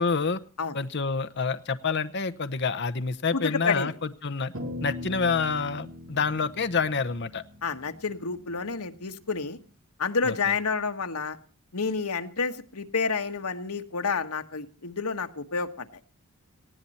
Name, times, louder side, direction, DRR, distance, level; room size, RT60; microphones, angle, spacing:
voice 1, 0.0-0.4 0.7-4.5 4.8-7.4 10.2-10.3, left 4 dB, 50° left, 10 dB, 0.9 m, -28 dB
voice 2, 3.3-3.9 7.6-9.6 10.0-11.4 11.7-15.9, left 5 dB, 85° left, 7 dB, 1.5 m, -29 dB
sound 1, 4.5-9.1, left 2 dB, 65° right, 2.3 m, -40 dB
19.0 x 15.5 x 4.2 m, 0.36 s
head